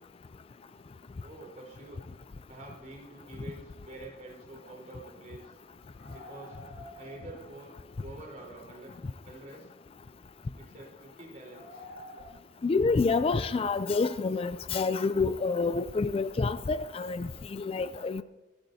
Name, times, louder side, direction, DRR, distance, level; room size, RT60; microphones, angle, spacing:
voice 1, 1.2-2.0 2.5-5.6 6.1-6.6 7.0-7.7 8.0-8.9 9.2-9.7 10.6-11.8, right 2 dB, 45° right, 4.1 m, -47 dB
sound 1, 3.2-3.3 3.8-3.9 4.1-4.2 5.9-8.0 8.6-8.7 10.0-10.3 11.5-12.3, left 1 dB, 85° left, 3.8 m, -49 dB
voice 2, 12.6-18.2, left 4 dB, 30° left, 0.3 m, -28 dB
25.5 x 9.0 x 2.7 m
head